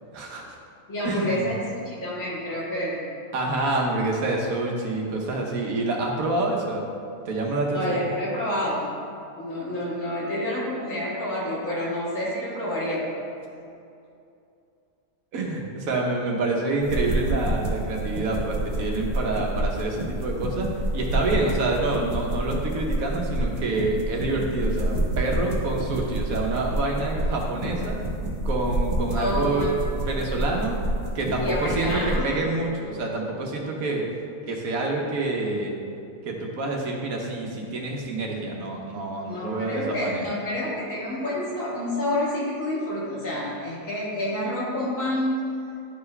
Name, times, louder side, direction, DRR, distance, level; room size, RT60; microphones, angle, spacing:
voice 1, 0.1-0.6 1.0-1.5 3.3-6.8 7.2-8.0 15.3-20.7 20.9-28.0 28.4-30.8 31.1-34.1 34.5-35.7 36.2-40.2, right 2 dB, 80° right, 0 dB, 1.4 m, -27 dB
voice 2, 0.9-3.1 7.7-8.9 9.4-13.0 29.1-29.7 31.4-32.3 39.3-45.5, left 1 dB, 65° left, -7 dB, 2.2 m, -28 dB
sound 1, 16.8-32.2, right 1 dB, 60° right, 1.5 m, -28 dB
10.5 x 4.6 x 3.3 m, 2.6 s
omnidirectional pair, 1.5 m